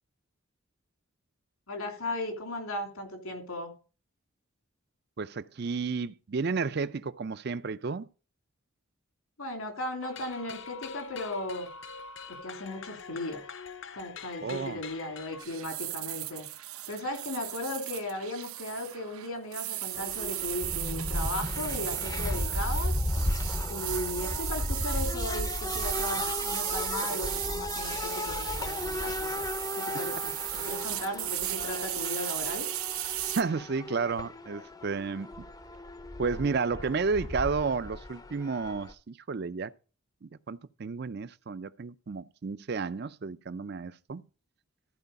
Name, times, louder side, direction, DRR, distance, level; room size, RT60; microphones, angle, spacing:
voice 1, 1.7-3.7 9.4-11.7 12.3-13.5 13.9-16.5 16.9-22.9 23.7-32.7, left 1 dB, 85° left, 2.9 m, -36 dB
voice 2, 5.2-8.1 14.4-14.8 33.4-35.4 36.2-39.7 40.2-44.2, right 4 dB, 50° right, 0.4 m, -32 dB
sound 1, 10.0-15.5, left 6 dB, 60° left, 0.8 m, -44 dB
sound 2, 15.4-33.4, right 15 dB, 85° right, 0.8 m, -36 dB
sound 3, 19.9-38.9, left 2 dB, 15° left, 0.5 m, -35 dB
14.0 x 4.8 x 5.3 m
head